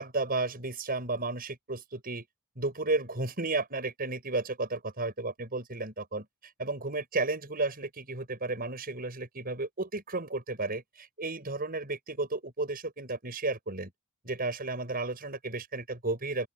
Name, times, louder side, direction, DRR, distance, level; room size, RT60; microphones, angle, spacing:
voice 1, 0.0-2.2 2.6-6.3 6.6-13.9 14.2-16.5, right 3 dB, 40° right, 6.0 m, -33 dB
open air
head